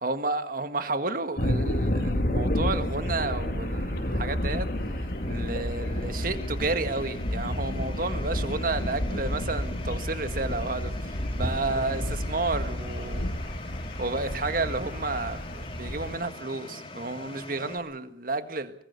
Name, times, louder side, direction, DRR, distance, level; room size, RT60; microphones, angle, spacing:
voice 1, 0.0-4.7 5.3-13.3 14.0-18.7, right 3 dB, 50° right, 1.8 m, -31 dB
sound 1, 1.4-16.2, left 1 dB, 55° left, 2.3 m, -30 dB
sound 2, 3.3-17.8, left 2 dB, 30° left, 2.9 m, -44 dB
24.5 x 20.0 x 6.8 m
head